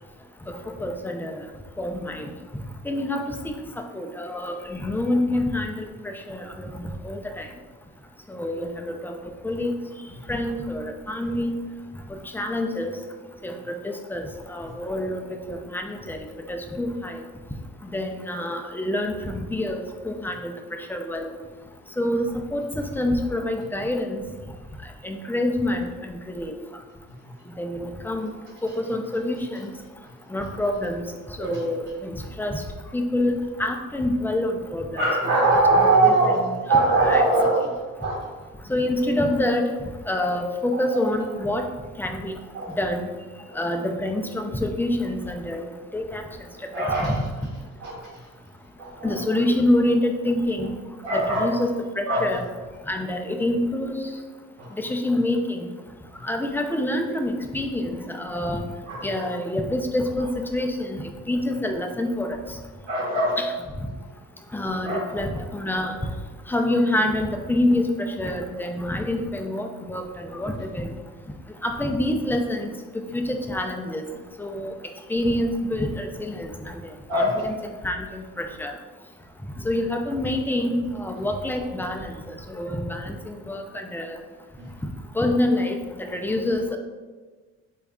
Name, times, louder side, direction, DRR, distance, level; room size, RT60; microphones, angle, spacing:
voice 1, 0.5-1.4 1.8-2.3 2.8-3.4 3.9-7.5 8.3-9.1 9.4-9.8 10.3-11.6 12.1-12.9 13.4-16.2 16.5-17.2 17.8-21.3 22.0-24.2 25.0-26.5 27.6-28.3 28.6-29.7 30.3-31.0 31.4-32.6 32.9-35.0 35.7-36.6 37.0-37.2 38.7-39.7 40.1-41.7 42.0-42.4 42.8-43.1 43.6-46.5 46.8-47.2 49.0-50.7 51.1-52.4 52.9-54.0 54.7-55.7 56.2-58.6 59.0-62.6 63.4-63.5 63.8-63.9 64.5-66.1 66.5-70.9 71.6-72.7 73.1-74.0 74.4-76.8 77.1-77.5 77.8-78.7 79.6-84.2 85.1-86.8, left 1 dB, 5° left, 4 dB, 0.3 m, -27 dB
voice 2, 34.9-36.4 36.7-37.7 38.0-38.4 40.7-41.0 42.5-42.7 43.5-43.8 46.5-47.1 47.8-48.1 48.8-49.4 51.0-51.6 52.1-52.3 54.6-54.7 58.8-59.3 62.8-63.4 64.8-65.1 77.1-77.5 84.6-84.8, right 2 dB, 75° right, -5 dB, 0.9 m, -22 dB
4.0 x 2.3 x 3.5 m, 1.4 s
cardioid pair, 90°, 30 cm